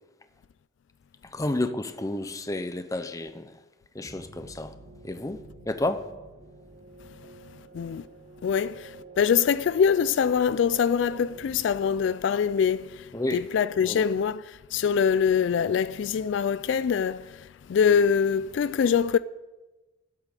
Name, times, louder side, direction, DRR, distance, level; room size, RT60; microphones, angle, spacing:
voice 1, 1.2-3.6 3.9-4.7 5.0-6.1 13.1-13.5 13.8-14.1, left 2 dB, 15° left, 0.6 m, -31 dB
sound 1, 4.0-12.7, right 3 dB, 30° right, 1.9 m, -49 dB
voice 2, 8.4-8.9 9.2-12.9 13.3-14.4 14.7-17.2 17.7-19.2, left 7 dB, 70° left, 0.3 m, -23 dB
8.5 x 8.1 x 9.2 m
head